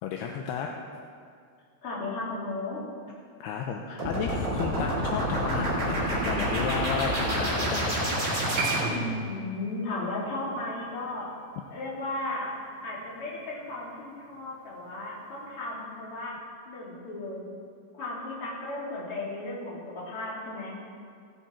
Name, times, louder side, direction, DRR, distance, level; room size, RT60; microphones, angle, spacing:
voice 1, 0.0-0.7 3.4-8.0, left 7 dB, 80° left, 2 dB, 2.4 m, -33 dB
voice 2, 1.8-2.8 9.2-11.3 11.7-12.5 12.8-16.4 16.7-17.4 17.9-20.8, left 2 dB, 35° left, -5 dB, 2.9 m, -35 dB
sound 1, 4.0-9.2, right 1 dB, 20° right, 3.4 m, -28 dB
Piano, 8.6-15.5 15.8-15.9, right 3 dB, 85° right, 1.7 m, -40 dB
17.5 x 9.7 x 4.4 m, 2.2 s
omnidirectional pair, 5.4 m